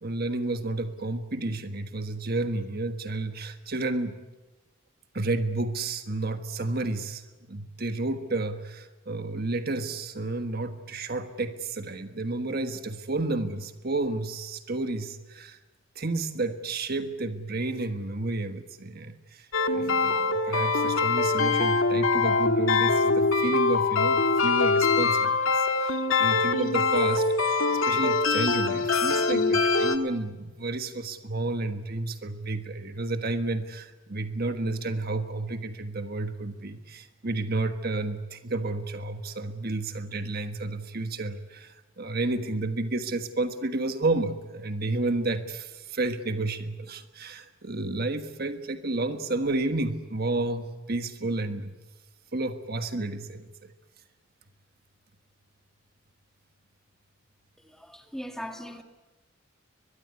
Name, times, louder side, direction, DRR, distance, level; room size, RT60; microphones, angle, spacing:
voice 1, 0.0-4.2 5.1-15.6 15.9-51.7 52.3-53.7, right 2 dB, 50° right, 1.5 m, -31 dB
sound 1, 19.5-30.0, left 3 dB, 80° left, 1.9 m, -23 dB
voice 2, 57.7-58.8, equal, ahead, 2.1 m, -39 dB
23.0 x 22.0 x 9.5 m
head